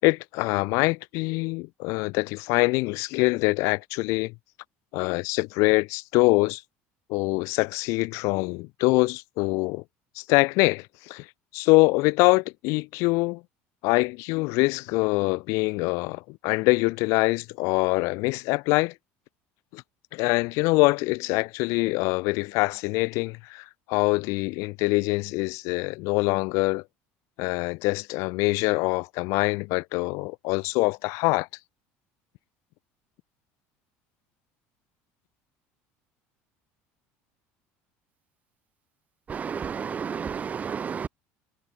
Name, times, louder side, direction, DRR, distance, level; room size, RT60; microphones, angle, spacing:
voice 1, 0.0-4.3 4.9-6.6 7.1-9.8 10.2-11.3 11.5-13.4 13.8-18.9 19.7-19.8 20.1-26.8 27.4-31.5, left 26 dB, 70° left, 7.3 m, -24 dB
voice 2, 39.3-41.1, right 7 dB, 30° right, 7.6 m, -31 dB
cardioid pair, 130°, 5 cm